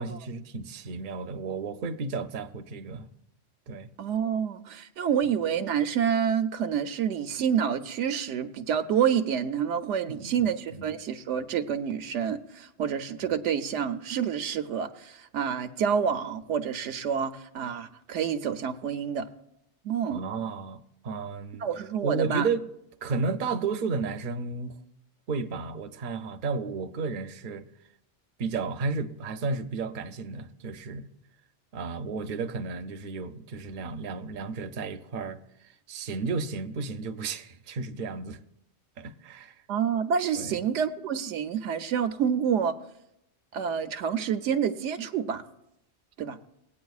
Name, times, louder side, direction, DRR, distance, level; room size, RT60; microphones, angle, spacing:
voice 1, 0.0-3.1 3.7-3.9 10.1-10.5 10.8-11.0 13.2-13.3 20.1-21.7 22.0-22.7 23.0-24.8 25.3-27.7 28.4-31.1 31.7-38.4 39.0-39.6 40.4-40.6, right 4 dB, 55° right, 0.6 m, -33 dB
voice 2, 4.0-19.3 19.8-20.2 21.6-22.5 39.7-42.7 43.5-45.4 46.2-46.4, right 8 dB, 85° right, 0.9 m, -28 dB
20.0 x 8.5 x 2.4 m
omnidirectional pair, 1.2 m